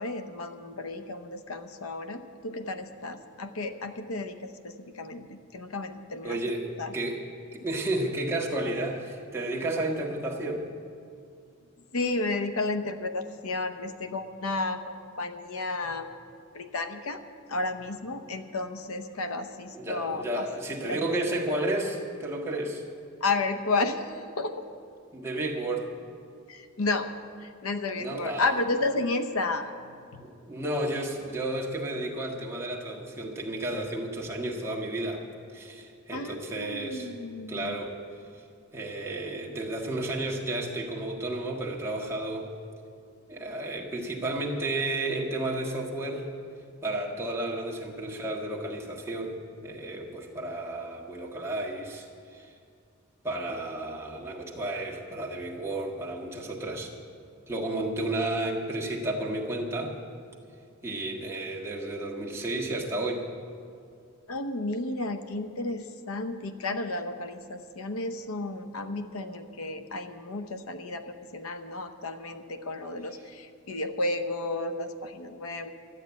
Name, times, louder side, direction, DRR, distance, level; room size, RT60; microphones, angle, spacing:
voice 1, 0.0-6.4 6.8-6.9 11.9-16.1 16.5-17.2 17.5-20.5 20.9-21.2 23.2-24.5 26.5-27.1 27.4-29.7 30.1-30.2 36.1-37.8 64.3-75.7, left 2 dB, 85° left, 9 dB, 0.8 m, -32 dB
voice 2, 6.2-7.3 7.5-10.7 19.7-22.8 25.1-26.0 28.0-28.5 30.2-35.2 35.5-37.1 37.5-38.0 38.3-38.4 38.7-42.5 43.3-46.3 46.8-49.4 49.6-52.5 53.2-56.9 57.5-59.9 60.8-63.2, right 2 dB, 10° right, -3 dB, 1.5 m, -32 dB
12.5 x 8.5 x 9.4 m, 2.4 s
head